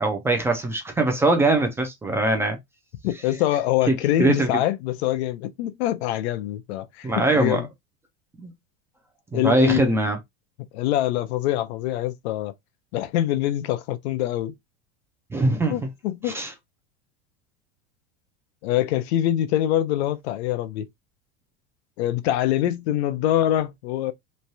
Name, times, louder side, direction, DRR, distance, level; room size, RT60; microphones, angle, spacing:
voice 1, 0.0-2.6 3.9-4.5 7.0-7.6 8.4-8.5 9.3-10.2 15.3-15.7 16.2-16.5, right 2 dB, 10° right, 0.3 m, -22 dB
voice 2, 3.0-7.7 9.3-10.0 10.7-12.5 12.9-14.5 15.7-16.4 18.6-20.9 22.0-24.1, left 13 dB, 90° left, 0.6 m, -24 dB
3.1 x 2.2 x 2.6 m
supercardioid pair, 150°, 32 cm